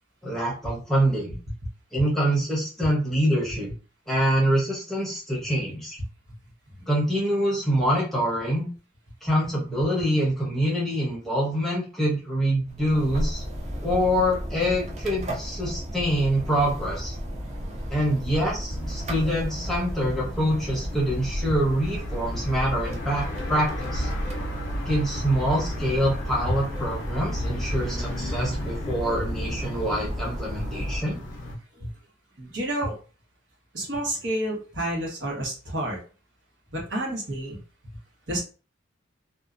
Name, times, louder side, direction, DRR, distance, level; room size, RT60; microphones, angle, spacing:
voice 1, 0.2-1.3 1.9-3.7 4.1-6.0 6.9-8.7 9.2-13.4 13.8-17.2 17.9-24.1 24.9-31.2, equal, ahead, -5 dB, 0.8 m, -25 dB
sound 1, 12.7-31.0, equal, 35° right, 0.5 m, -34 dB
sound 2, 18.7-31.6, left 1 dB, 80° left, 0.5 m, -34 dB
voice 2, 32.4-32.9 33.7-36.0 36.7-37.6 37.9-38.0 38.3-38.4, right 1 dB, 70° right, -2 dB, 1.1 m, -30 dB
2.7 x 2.2 x 2.4 m, 0.36 s
head